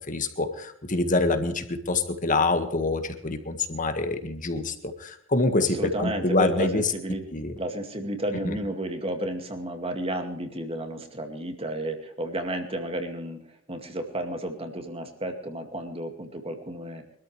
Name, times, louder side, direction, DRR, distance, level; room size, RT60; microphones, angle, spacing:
voice 1, 0.1-6.8 7.3-7.5 8.4-8.6, left 2 dB, 40° left, 8 dB, 1.7 m, -26 dB
voice 2, 5.6-7.2 7.6-13.4 13.7-17.0, right 1 dB, 30° right, 5 dB, 2.2 m, -32 dB
24.0 x 13.5 x 3.3 m, 0.70 s
head